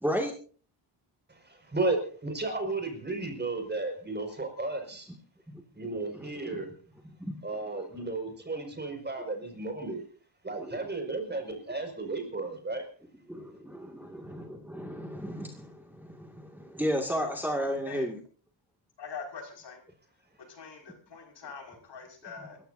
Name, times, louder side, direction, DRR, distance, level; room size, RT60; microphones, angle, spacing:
voice 1, 0.0-0.3 5.5-5.6 6.1-6.6 7.0-7.4 10.6-10.8 13.3-18.2, equal, 5° right, 1 dB, 2.1 m, -34 dB
voice 2, 1.3-5.1 5.8-6.7 7.4-10.0 10.4-12.8, right 3 dB, 25° right, 4 dB, 5.5 m, -33 dB
voice 3, 19.0-19.8 20.5-22.6, left 5 dB, 70° left, 2 dB, 5.8 m, -43 dB
28.5 x 14.5 x 2.7 m, 0.42 s
cardioid pair, 115°, 44 cm